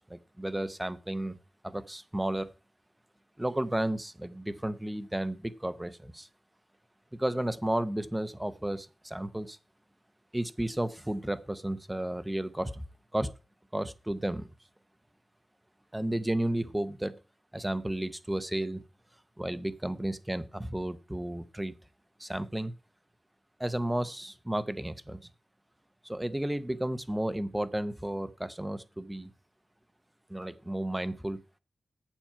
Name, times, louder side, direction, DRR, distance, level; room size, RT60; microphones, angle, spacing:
voice 1, 0.1-1.4 1.6-2.5 3.4-6.3 7.1-9.6 10.3-12.8 13.1-13.3 13.7-14.5 15.9-17.2 17.5-18.8 19.4-21.7 22.2-22.7 23.6-25.2 26.0-29.3 30.3-31.4, right 1 dB, 5° right, 13 dB, 0.6 m, -33 dB
8.7 x 7.3 x 5.6 m, 0.32 s
wide cardioid pair, 175°, 0 cm